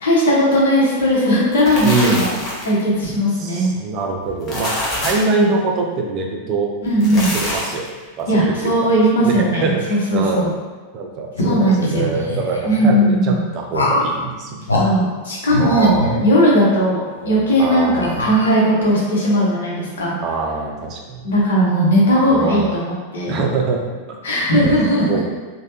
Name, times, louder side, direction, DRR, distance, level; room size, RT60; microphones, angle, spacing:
voice 1, 0.0-2.4 2.6-3.7 5.1-5.5 6.8-7.3 8.3-10.5 11.4-12.1 12.6-13.4 14.7-20.2 21.2-23.4 24.2-25.2, equal, 65° left, -5 dB, 0.9 m, -17 dB
sound 1, 1.3-2.8 4.3-5.4 6.9-7.9, left 1 dB, 30° left, 0.8 m, -25 dB
voice 2, 1.8-2.3 3.4-6.7 7.1-7.9 8.2-8.9 9.2-10.5 10.9-14.9 15.6-16.3 17.6-18.3 20.2-21.2 22.3-22.7 23.3-23.8 24.1-24.2 25.1-25.2, right 4 dB, 35° right, 1 dB, 0.5 m, -24 dB
sound 2, 11.3-12.8 13.7-14.2 14.7-14.9 15.5-16.7 17.2-17.3 18.0-18.9, left 2 dB, 80° left, 0.4 m, -24 dB
3.2 x 2.2 x 2.8 m, 1.4 s
figure-of-eight pair, 90°, 0 cm